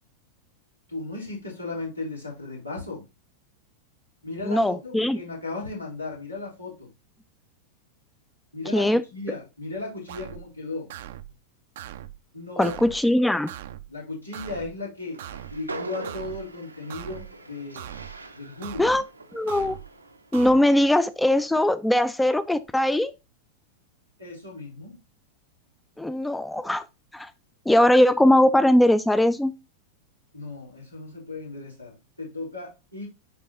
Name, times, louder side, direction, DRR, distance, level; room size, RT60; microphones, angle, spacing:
voice 1, 0.9-3.0 4.2-6.9 8.5-10.9 12.3-12.8 13.9-15.2 15.5-18.0 18.3-18.9 24.2-24.9 30.3-33.1, left 3 dB, 90° left, 3.4 m, -36 dB
voice 2, 4.4-5.2 8.7-9.0 12.6-13.5 18.8-19.0 19.3-19.8 20.3-23.1 26.0-26.8 27.1-27.3 27.7-29.5, left 1 dB, 5° left, 0.4 m, -20 dB
sound 1, 10.1-10.5 10.9-11.3 11.8-12.2 12.6-13.0 13.5-13.9 14.3-14.7 15.2-15.6 16.0-16.5 16.9-17.3 17.8-18.2 18.6-19.0 19.5-19.9 20.3-20.6, right 12 dB, 55° right, 0.5 m, -40 dB
Train, 15.0-20.3, right 2 dB, 80° right, 0.8 m, -42 dB
10.5 x 3.7 x 2.8 m
figure-of-eight pair, 90°, 0 cm